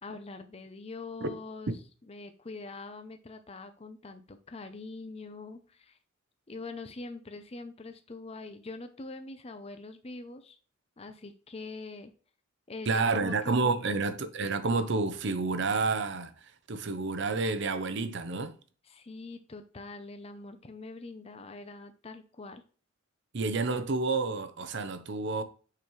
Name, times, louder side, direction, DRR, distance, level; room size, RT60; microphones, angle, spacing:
voice 1, 0.0-1.7 2.1-6.0 6.5-10.6 11.0-12.1 12.7-14.1 18.9-22.6, left 3 dB, 30° left, 0.6 m, -43 dB
voice 2, 12.9-16.3 16.7-18.5 23.3-25.4, right 3 dB, 60° right, 0.8 m, -29 dB
6.7 x 5.2 x 3.1 m
head